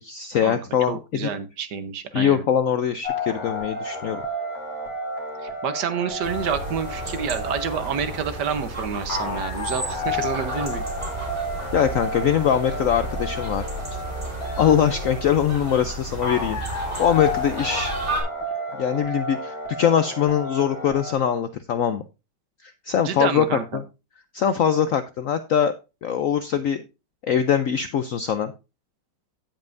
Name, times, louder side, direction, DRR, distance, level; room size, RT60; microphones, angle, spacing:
voice 1, 0.0-1.3 2.1-4.2 11.7-13.6 13.9-14.0 14.6-17.9 18.8-22.0 22.6-23.4 23.7-23.8 24.3-25.7 26.0-26.8 27.2-28.5, left 8 dB, 70° left, 11 dB, 0.7 m, -22 dB
voice 2, 0.9-2.4 5.4-10.8 23.0-23.6, right 7 dB, 65° right, 11 dB, 1.5 m, -28 dB
sound 1, 3.0-21.1, left 2 dB, 50° left, 2.9 m, -32 dB
sound 2, 6.2-18.2, right 2 dB, 35° right, 4.0 m, -33 dB
16.0 x 5.4 x 2.5 m, 0.27 s
omnidirectional pair, 2.0 m